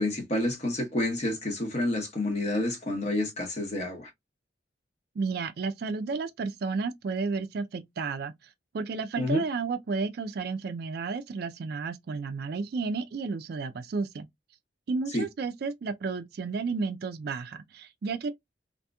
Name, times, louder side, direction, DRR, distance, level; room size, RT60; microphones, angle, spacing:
voice 1, 0.0-4.1 9.2-9.4 15.1-15.2, left 1 dB, 40° left, 0.9 m, -29 dB
voice 2, 5.2-14.3 14.9-18.3, right 4 dB, 60° right, 0.4 m, -32 dB
2.8 x 2.5 x 2.2 m
head